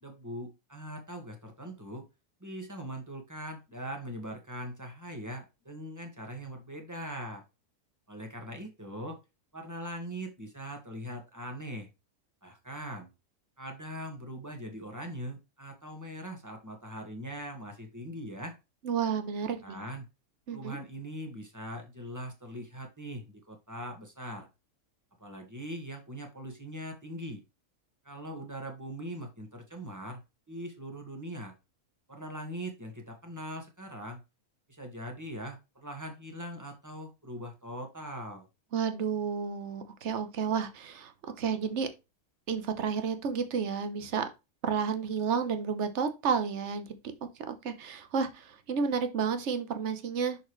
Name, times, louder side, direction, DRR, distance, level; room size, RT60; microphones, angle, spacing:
voice 1, 0.0-2.0 2.4-7.4 8.1-9.2 9.5-11.9 12.4-13.1 13.6-18.5 19.6-20.1 20.5-24.5 25.2-27.4 28.0-30.2 30.5-31.5 32.1-34.2 34.7-38.5, equal, 10° right, 1.6 m, -41 dB
voice 2, 18.8-19.8 20.5-20.8 38.7-41.1 41.4-41.9 42.5-44.3 44.6-46.9 47.5-50.4, right 6 dB, 55° right, 1.2 m, -31 dB
6.5 x 5.5 x 3.2 m
omnidirectional pair, 1.6 m